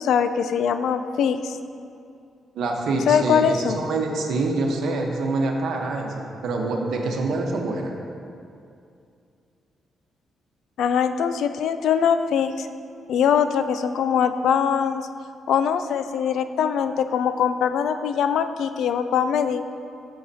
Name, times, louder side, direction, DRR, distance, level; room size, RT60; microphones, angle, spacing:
voice 1, 0.0-1.6 3.1-3.8 10.8-12.7 13.1-15.0 15.5-19.6, left 7 dB, 80° left, 10 dB, 0.4 m, -22 dB
voice 2, 2.5-7.9, right 3 dB, 75° right, 2 dB, 1.0 m, -26 dB
11.5 x 6.5 x 2.8 m, 2.5 s
cardioid pair, 85°, 0 cm